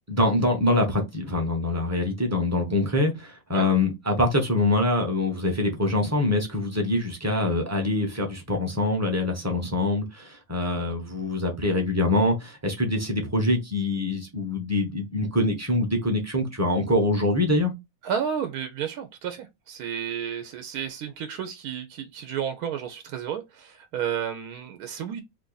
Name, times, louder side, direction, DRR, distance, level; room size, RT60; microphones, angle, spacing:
voice 1, 0.1-17.7, left 1 dB, 15° right, 0.6 m, -24 dB
voice 2, 18.0-25.2, right 8 dB, 85° right, 1.1 m, -32 dB
2.9 x 2.5 x 3.8 m
omnidirectional pair, 1.5 m